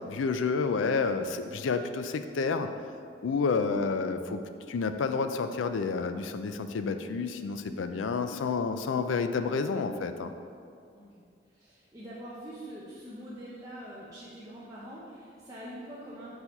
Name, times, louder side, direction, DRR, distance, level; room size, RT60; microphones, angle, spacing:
voice 1, 0.0-2.7 3.2-4.4 4.7-10.3, left 4 dB, 85° left, 9 dB, 0.4 m, -29 dB
voice 2, 10.9-16.4, equal, 20° right, -8 dB, 0.7 m, -44 dB
4.6 x 4.2 x 5.3 m, 2.3 s
head